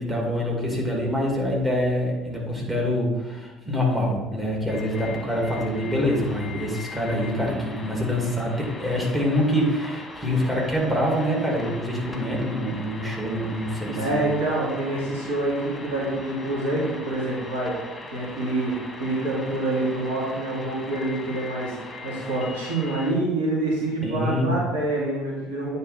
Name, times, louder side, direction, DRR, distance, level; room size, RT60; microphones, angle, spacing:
voice 1, 0.0-14.2 24.0-24.6, equal, 15° right, -2 dB, 2.3 m, -25 dB
sound 1, 4.7-23.1, left 3 dB, 15° left, 1.4 m, -40 dB
voice 2, 14.0-17.8 18.1-18.7 19.0-21.7 22.0-25.8, right 2 dB, 70° right, -5 dB, 2.3 m, -26 dB
9.2 x 4.1 x 4.2 m, 1.2 s
figure-of-eight pair, 60°, 0 cm